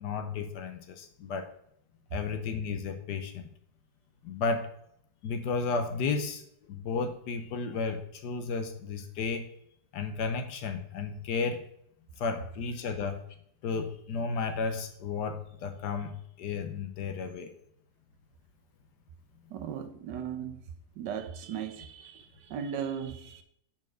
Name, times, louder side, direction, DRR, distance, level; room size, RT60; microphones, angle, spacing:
voice 1, 0.0-1.5 2.1-3.5 4.2-4.7 5.2-9.5 9.9-11.6 12.2-13.2 13.6-17.5, left 4 dB, 75° left, 1.4 m, -33 dB
voice 2, 19.5-20.6 21.0-23.4, right 8 dB, 85° right, 1.5 m, -37 dB
5.9 x 4.5 x 6.1 m
omnidirectional pair, 1.8 m